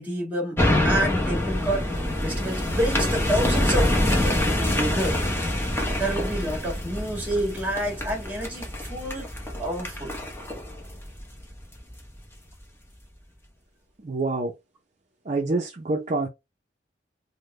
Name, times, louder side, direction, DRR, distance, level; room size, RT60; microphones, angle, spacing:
voice 1, 0.0-1.9 2.2-5.2 6.0-9.3 9.6-10.1, right 1 dB, 10° right, 1.4 m, -29 dB
sound 1, 0.6-12.0 12.5-12.6, left 1 dB, 15° left, 0.8 m, -26 dB
voice 2, 14.0-14.5 15.2-16.3, right 3 dB, 40° right, 0.5 m, -26 dB
3.6 x 2.1 x 3.1 m
head